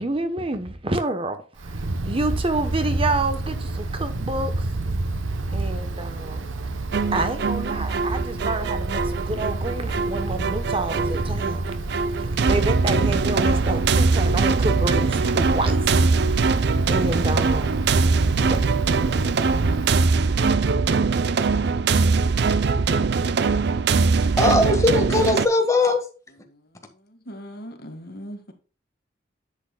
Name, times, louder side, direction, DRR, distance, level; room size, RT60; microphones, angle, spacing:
voice 1, 0.0-4.7 5.5-6.5 7.1-11.6 11.9-17.8 18.4-18.6, right 2 dB, 30° right, 0.9 m, -29 dB
Wind, 1.6-20.0, right 2 dB, 85° right, 0.8 m, -28 dB
sound 1, 6.9-25.5, right 4 dB, 55° right, 0.5 m, -22 dB
voice 2, 24.4-26.0, left 2 dB, 15° left, 1.5 m, -19 dB
voice 3, 26.5-28.5, equal, 55° left, 1.7 m, -40 dB
10.5 x 8.0 x 2.2 m
head